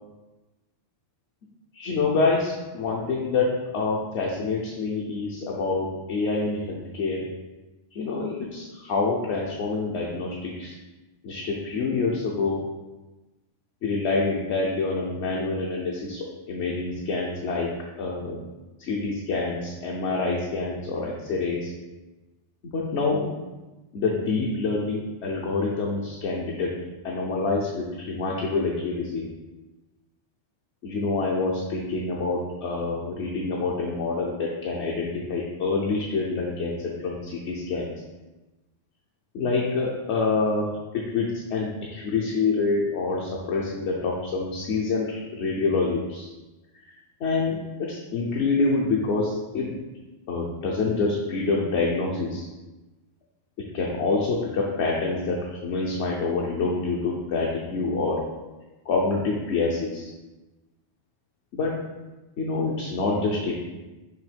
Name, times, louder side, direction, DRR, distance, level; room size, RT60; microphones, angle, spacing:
voice 1, 1.7-7.2 7.9-10.7 11.2-12.6 13.8-17.7 18.0-18.4 18.8-21.7 22.7-23.3 23.9-26.7 27.0-29.2 30.8-37.9 39.3-40.7 41.1-45.1 45.3-46.3 47.2-49.7 50.3-52.5 53.7-58.2 58.9-60.1 61.5-61.7 62.4-63.5, left 3 dB, 65° left, -3 dB, 1.0 m, -26 dB
6.2 x 3.0 x 5.1 m, 1.1 s
omnidirectional pair, 1.3 m